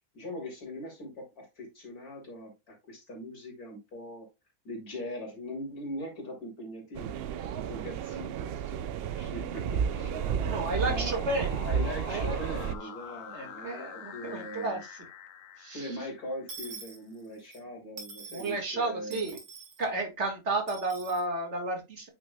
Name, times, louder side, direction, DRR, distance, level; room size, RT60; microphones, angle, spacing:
voice 1, 0.1-4.3 4.6-10.1 10.8-11.1 11.6-14.8 15.7-19.2, left 1 dB, 90° left, 3.2 m, -41 dB
sound 1, 6.9-12.8, right 8 dB, 70° right, 0.5 m, -32 dB
sound 2, 9.0-16.8, left 8 dB, 65° left, 1.1 m, -46 dB
voice 2, 10.4-11.8 12.1-12.4 13.3-15.0 15.6-16.0 18.3-19.4 19.8-22.1, right 2 dB, 50° right, 2.1 m, -32 dB
Dishes pots and pans / Coin (dropping), 16.5-17.6 18.0-18.6 19.1-19.8 20.7-21.2, right 4 dB, 85° right, 2.5 m, -45 dB
8.6 x 6.2 x 2.2 m
omnidirectional pair, 1.5 m